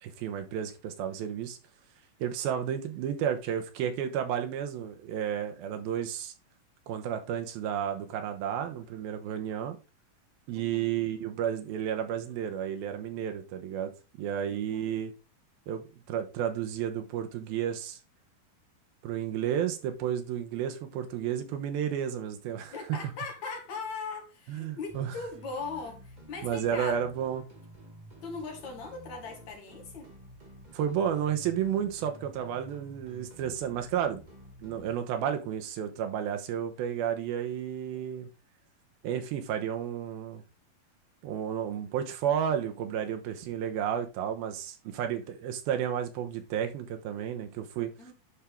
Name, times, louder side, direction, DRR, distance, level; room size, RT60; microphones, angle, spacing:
voice 1, 0.0-1.6 2.2-6.3 6.9-9.8 10.5-13.9 14.2-15.1 15.7-18.0 19.0-22.7 24.5-25.1 26.4-27.5 30.7-34.2 34.6-38.3 39.0-40.4 41.2-47.9, right 9 dB, 85° right, 2.9 m, -32 dB
voice 2, 10.5-10.9 14.7-14.9 22.7-27.0 28.2-30.1 48.0-48.1, left 4 dB, 55° left, 2.9 m, -39 dB
sound 1, 24.9-35.0, right 1 dB, 20° right, 1.4 m, -51 dB
11.0 x 4.5 x 3.6 m
omnidirectional pair, 4.2 m